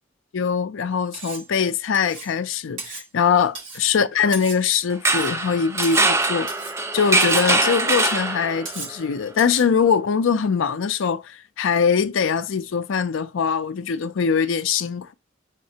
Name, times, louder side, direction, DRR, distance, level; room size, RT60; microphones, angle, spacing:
voice 1, 0.3-6.5 6.9-15.1, left 6 dB, 80° left, 0.4 m, -22 dB
Cutlery silverware, 1.1-1.5 1.9-2.3 2.8-3.1 3.5-3.9 4.3-4.7 5.1-5.4 5.8-6.2 6.5-6.8 7.2-7.5 7.9-8.2 8.7-9.0 9.4-9.7, right 4 dB, 70° right, 1.7 m, -36 dB
sound 1, 4.9-8.8, right 3 dB, 15° right, 0.4 m, -22 dB
3.6 x 3.2 x 2.8 m
head